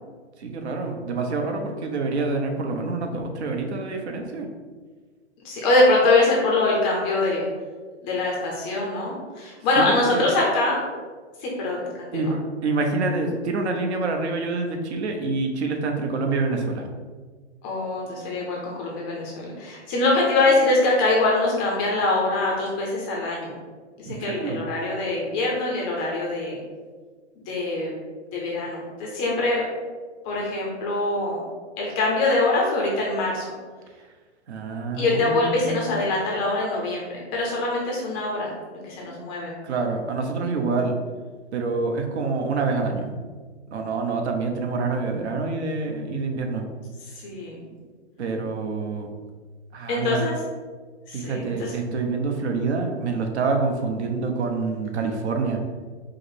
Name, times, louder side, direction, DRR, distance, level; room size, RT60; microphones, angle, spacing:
voice 1, 0.4-4.5 9.8-10.3 12.1-16.9 24.1-24.6 34.5-35.9 39.6-40.9 41.5-43.1 43.7-46.6 48.2-49.1 49.7-50.2 51.1-55.6, right 3 dB, 65° right, 3 dB, 0.9 m, -26 dB
voice 2, 5.4-7.4 8.0-10.8 11.4-12.3 17.6-23.5 24.0-26.6 27.5-27.9 28.3-29.6 30.2-31.5 31.8-33.4 35.0-39.5 47.2-47.6 49.9-50.4 51.1-51.7, left 2 dB, 15° left, -3 dB, 0.4 m, -23 dB
4.9 x 2.0 x 4.6 m, 1.5 s
hypercardioid pair, 140°, 36 cm